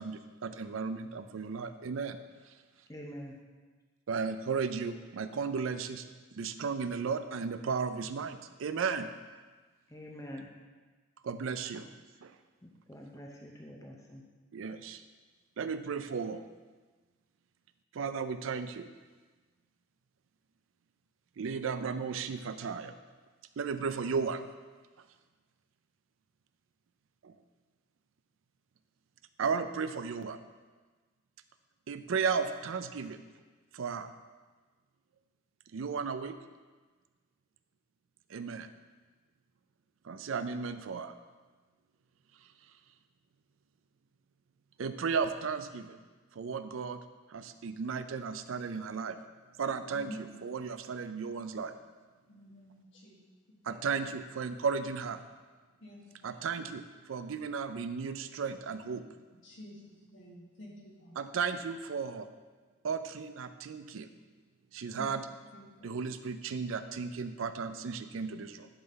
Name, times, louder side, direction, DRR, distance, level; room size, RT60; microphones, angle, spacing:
voice 1, 0.0-2.2 2.5-2.6 4.1-6.0 6.3-9.4 11.2-11.9 12.2-12.3 14.5-15.0 15.6-16.4 17.9-18.9 21.4-22.9 23.6-24.4 27.2-27.3 29.4-30.4 31.9-33.2 33.7-34.1 35.7-36.3 38.3-38.7 40.0-41.1 44.8-46.0 46.3-47.0 47.3-49.2 49.6-50.1 50.4-51.7 53.6-55.2 56.2-59.0 61.2-62.3 62.8-64.1 64.7-65.2 65.8-68.7, right 5 dB, 80° right, 10 dB, 0.4 m, -34 dB
voice 2, 2.9-3.4 9.9-10.5 12.6-14.2, equal, 15° left, 0 dB, 0.6 m, -46 dB
voice 3, 49.9-50.4 52.3-53.2 53.5-53.8 55.8-56.4 59.4-61.2 64.9-65.1 65.5-65.9, equal, 60° left, -3 dB, 1.7 m, -49 dB
11.0 x 3.8 x 4.1 m, 1.3 s
head